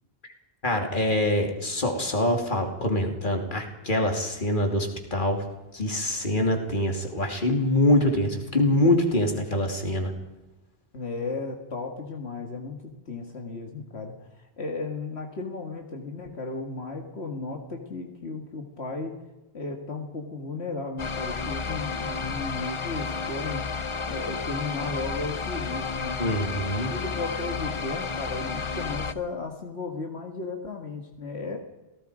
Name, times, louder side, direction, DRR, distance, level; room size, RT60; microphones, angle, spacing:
voice 1, 0.6-5.4 5.7-10.1 26.2-26.9, left 1 dB, 50° left, 3 dB, 3.1 m, -24 dB
voice 2, 10.9-19.2 19.5-23.6 24.1-26.2 26.9-31.6, left 3 dB, 80° left, 2 dB, 2.3 m, -35 dB
sound 1, 21.0-29.1, left 4 dB, 30° left, 0.8 m, -32 dB
29.0 x 18.0 x 5.1 m, 1.0 s
omnidirectional pair, 1.1 m